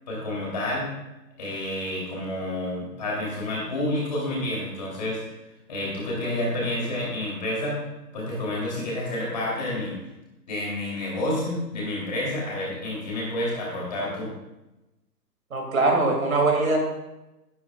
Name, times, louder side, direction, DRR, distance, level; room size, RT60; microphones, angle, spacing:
voice 1, 0.1-0.9 1.4-5.2 5.7-7.8 8.1-10.0 10.5-14.3, left 1 dB, 25° left, -5 dB, 3.3 m, -29 dB
voice 2, 15.5-16.8, right 3 dB, 55° right, 1 dB, 2.5 m, -22 dB
14.5 x 10.0 x 2.4 m, 0.98 s
hypercardioid pair, 180°, 49 cm